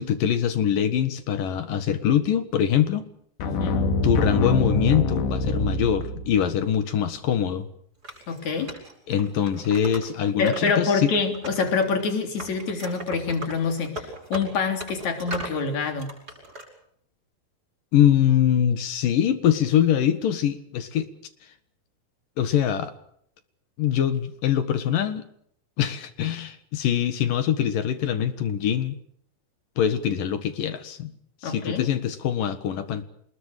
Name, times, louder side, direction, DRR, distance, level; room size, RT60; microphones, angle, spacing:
voice 1, 0.0-3.1 4.0-7.7 9.1-11.1 17.9-21.1 22.4-22.9 23.8-25.3 25.8-29.0 29.8-31.1 31.4-33.0, left 9 dB, 60° left, 11 dB, 2.9 m, -23 dB
sound 1, 3.4-6.5, left 2 dB, 85° left, 4.3 m, -25 dB
voice 2, 3.4-3.8 8.3-8.7 10.4-16.1 31.4-31.9, left 4 dB, 45° left, 6 dB, 4.4 m, -26 dB
Wood, 8.0-10.7 11.0-12.1 12.4-15.6 16.0-16.7, right 1 dB, 20° right, 8.0 m, -38 dB
26.5 x 21.0 x 6.7 m, 0.68 s
omnidirectional pair, 4.8 m